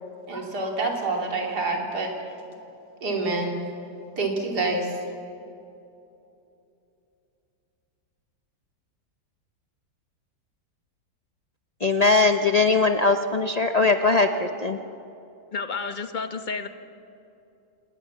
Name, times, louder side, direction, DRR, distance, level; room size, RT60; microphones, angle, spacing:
voice 1, 0.3-2.1 3.0-3.6 4.2-4.9, right 3 dB, 60° right, 3.7 m, -27 dB
voice 2, 11.8-14.8, left 3 dB, 85° left, 0.3 m, -20 dB
voice 3, 15.5-16.7, left 5 dB, 30° left, 1.0 m, -31 dB
27.0 x 19.5 x 7.3 m
omnidirectional pair, 2.0 m